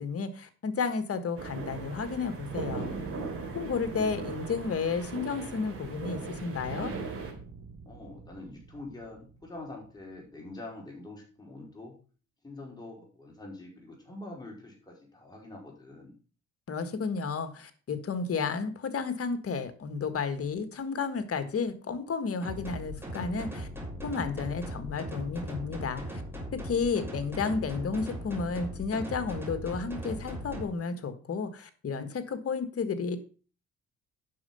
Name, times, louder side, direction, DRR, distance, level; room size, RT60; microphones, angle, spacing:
voice 1, 0.0-2.9 3.5-6.9 16.7-23.7 24.0-26.2 26.6-33.2, left 5 dB, 50° left, 10 dB, 1.6 m, -32 dB
sound 1, 1.4-7.3, right 4 dB, 50° right, 3.8 m, -38 dB
sound 2, 2.4-10.5, right 5 dB, 90° right, 1.4 m, -48 dB
voice 2, 7.8-12.0 12.4-16.1, left 2 dB, 15° left, -1 dB, 4.7 m, -45 dB
sound 3, 22.4-30.6, equal, 5° right, 3.4 m, -39 dB
9.5 x 6.3 x 5.6 m, 0.38 s
cardioid pair, 90°, 30 cm